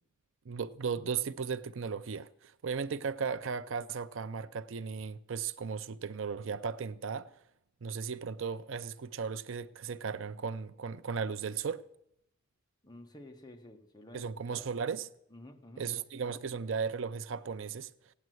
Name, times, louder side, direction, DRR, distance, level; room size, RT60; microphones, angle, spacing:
voice 1, 0.5-7.3 7.8-11.8 14.1-15.1 15.8-18.1, right 6 dB, 65° right, 0.5 m, -36 dB
voice 2, 12.8-14.7 15.3-15.8, left 1 dB, 20° left, 1.2 m, -51 dB
16.5 x 9.5 x 7.7 m
head